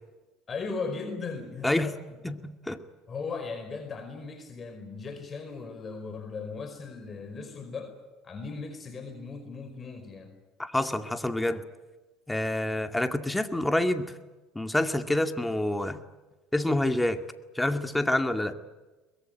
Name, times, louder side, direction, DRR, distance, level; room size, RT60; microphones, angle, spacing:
voice 1, 0.5-1.9 3.1-8.0 8.2-10.3, left 4 dB, 35° left, 7 dB, 4.9 m, -37 dB
voice 2, 2.2-2.8 10.6-11.6 12.3-14.1 14.5-16.0 16.5-17.2 17.6-18.5, left 1 dB, 10° left, 7 dB, 2.2 m, -27 dB
23.0 x 21.5 x 9.2 m, 1.2 s
supercardioid pair, 85°, 0 cm